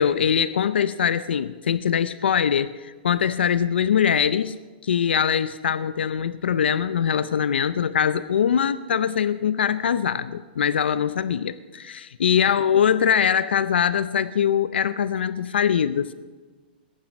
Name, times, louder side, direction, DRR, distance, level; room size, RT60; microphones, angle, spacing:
voice 1, 0.0-4.5 4.8-16.1, left 8 dB, 85° left, 14 dB, 0.6 m, -22 dB
21.0 x 10.5 x 5.3 m, 1.3 s
hypercardioid pair, 150°, 6 cm